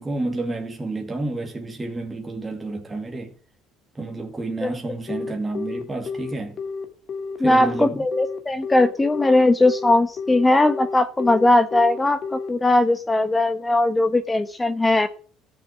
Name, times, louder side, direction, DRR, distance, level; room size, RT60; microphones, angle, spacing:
voice 1, 0.0-3.3 3.9-6.6 7.4-8.1, right 2 dB, 15° right, 2.2 m, -30 dB
Telephone, 5.1-12.5, left 4 dB, 45° left, 2.1 m, -31 dB
voice 2, 7.4-15.1, left 2 dB, 15° left, 1.0 m, -19 dB
14.0 x 7.1 x 8.6 m
cardioid pair, 105°, 0 cm